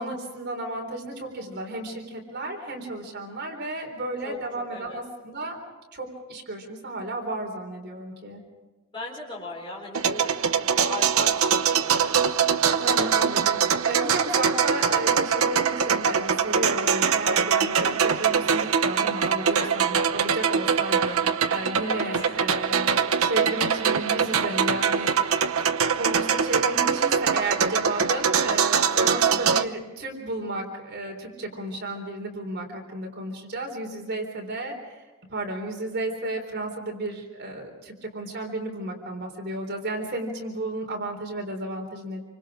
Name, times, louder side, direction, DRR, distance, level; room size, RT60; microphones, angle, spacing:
voice 1, 0.0-5.6 5.9-8.4 12.7-25.4 26.0-42.2, right 1 dB, 50° right, 2 dB, 3.9 m, -33 dB
voice 2, 4.7-5.0 8.9-11.9 19.4-19.7 21.8-22.3 29.0-29.3, left 2 dB, 25° left, -4 dB, 4.5 m, -39 dB
sound 1, 9.9-29.6, right 6 dB, 90° right, 0.8 m, -23 dB
27.5 x 25.0 x 5.0 m, 1.2 s
head